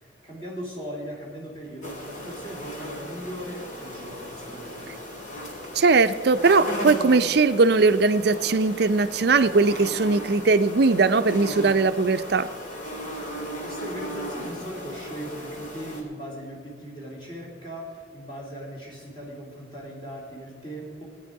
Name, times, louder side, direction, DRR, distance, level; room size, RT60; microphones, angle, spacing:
voice 1, 0.2-5.1 13.6-21.0, equal, 25° left, -3 dB, 3.0 m, -38 dB
sound 1, 1.8-16.0, left 1 dB, 40° left, 2.1 m, -36 dB
voice 2, 5.7-12.5, right 4 dB, 55° right, 11 dB, 0.5 m, -20 dB
17.0 x 9.4 x 4.7 m, 2.2 s
head